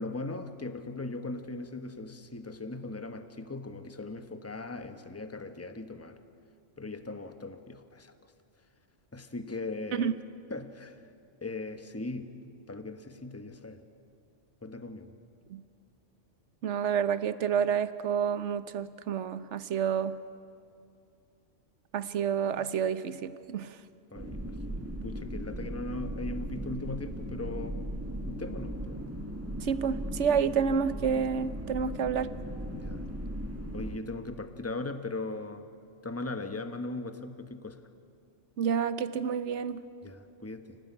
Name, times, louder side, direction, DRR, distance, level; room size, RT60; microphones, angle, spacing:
voice 1, 0.0-6.2 6.8-8.1 9.1-10.1 10.5-11.0 11.4-12.3 12.7-13.8 14.6-15.1 24.1-27.8 28.3-29.0 32.7-33.0 33.7-35.7 36.0-37.9 40.0-40.8, left 2 dB, 10° left, 8 dB, 1.1 m, -39 dB
voice 2, 16.6-20.2 21.9-23.8 29.6-32.3 38.6-39.8, right 7 dB, 70° right, 13 dB, 1.2 m, -29 dB
sound 1, 24.2-34.0, right 1 dB, 10° right, 1.9 m, -37 dB
28.0 x 18.5 x 9.8 m, 2.4 s
omnidirectional pair, 1.3 m